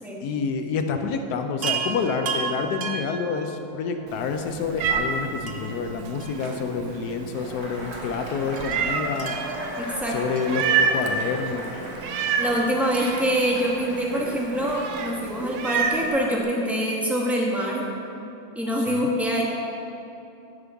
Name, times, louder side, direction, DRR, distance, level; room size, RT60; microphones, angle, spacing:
voice 1, 0.2-9.4 10.1-11.7 18.9-19.1, left 5 dB, 85° left, 6 dB, 1.2 m, -28 dB
Chime, 1.6-4.0 5.5-7.0 7.3-7.4 8.6-11.3 12.9-14.5 16.1-16.2 16.4-16.5, right 6 dB, 55° right, 0.7 m, -35 dB
Meow, 4.1-16.1, right 5 dB, 90° right, 1.2 m, -29 dB
Cheering / Applause / Crowd, 7.3-16.0, right 1 dB, 70° right, 2.3 m, -37 dB
voice 2, 9.8-10.1 12.4-17.8 18.5-19.4, equal, ahead, -3 dB, 0.9 m, -25 dB
13.5 x 5.3 x 3.5 m, 2.8 s
omnidirectional pair, 1.6 m